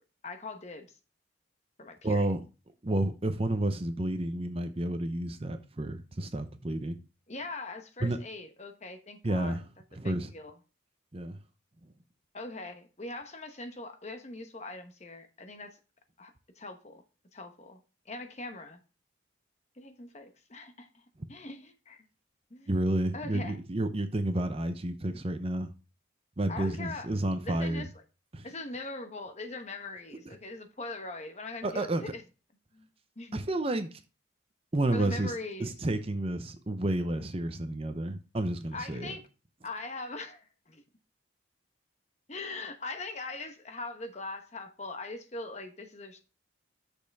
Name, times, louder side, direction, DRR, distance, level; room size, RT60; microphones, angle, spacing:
voice 1, 0.2-0.9 1.8-2.3 7.3-9.6 10.0-10.5 12.3-15.8 16.2-17.0 17.3-17.8 18.0-18.8 19.8-21.0 21.3-22.0 22.5-22.8 23.1-23.6 26.5-27.1 27.4-27.9 28.4-32.2 32.7-32.9 33.2-33.4 34.9-35.7 38.7-39.2 39.6-40.8 42.3-46.2, left 2 dB, 35° left, 1.1 m, -41 dB
voice 2, 2.0-2.4 2.8-7.0 8.0-8.2 9.2-9.6 10.0-10.3 11.1-11.4 22.7-25.7 26.4-27.9 28.3-28.5 31.6-32.0 33.3-34.0 34.7-35.3 35.6-39.1, right 1 dB, 30° right, 0.7 m, -30 dB
7.9 x 6.6 x 3.4 m
head